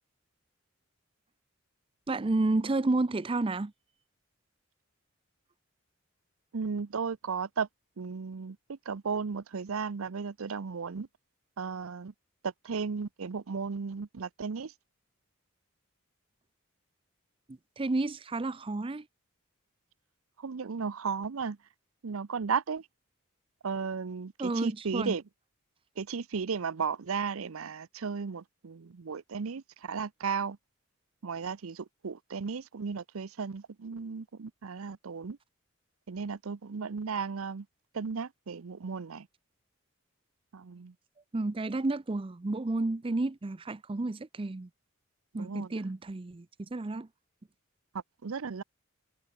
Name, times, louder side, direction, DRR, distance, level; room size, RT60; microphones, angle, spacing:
voice 1, 2.1-3.7 17.8-19.0 24.4-25.1 41.3-44.7 45.3-47.1, right 2 dB, 25° right, 0.5 m, -31 dB
voice 2, 6.5-7.7 8.0-11.1 11.6-12.1 12.4-14.7 20.4-21.6 22.0-22.8 23.6-25.2 26.0-30.6 31.2-35.4 36.1-37.7 37.9-39.3 40.5-40.9 45.3-45.7 48.2-48.6, right 5 dB, 80° right, 0.6 m, -35 dB
head